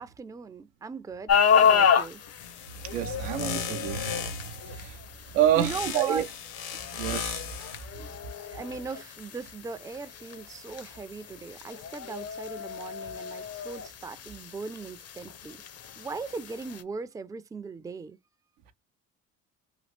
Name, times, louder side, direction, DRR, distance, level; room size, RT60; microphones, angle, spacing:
voice 1, 0.0-2.2 5.5-6.3 8.0-15.6 16.0-18.2, right 4 dB, 10° right, 0.4 m, -38 dB
sound 1, 1.3-16.8, left 7 dB, 40° left, 0.6 m, -30 dB
sound 2, 2.4-4.6 5.6-7.9, left 8 dB, 75° left, 1.1 m, -37 dB
voice 2, 2.8-4.1 4.8-5.0 5.3-6.2 7.0-7.4, right 11 dB, 90° right, 0.6 m, -27 dB
3.0 x 2.4 x 3.2 m
supercardioid pair, 70°, 37 cm